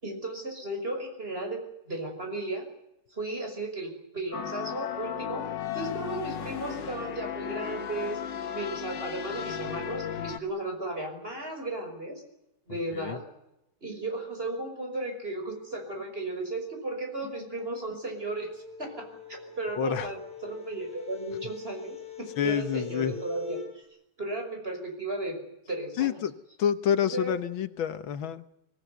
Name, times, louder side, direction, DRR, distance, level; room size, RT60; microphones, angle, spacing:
voice 1, 0.0-2.7 3.1-5.5 5.7-8.2 8.5-12.2 12.7-13.2 13.8-23.8 24.2-25.4 25.7-26.1 27.1-27.3, right 2 dB, 30° right, 4 dB, 5.8 m, -35 dB
sound 1, 4.3-10.4, left 9 dB, 65° left, 1.9 m, -35 dB
sound 2, 17.6-23.7, left 6 dB, 5° left, 7.1 m, -45 dB
voice 2, 19.8-20.1 22.4-23.1 26.0-26.3 26.6-28.4, left 9 dB, 85° left, 11 dB, 1.9 m, -28 dB
24.0 x 17.5 x 9.3 m, 0.86 s
omnidirectional pair, 2.1 m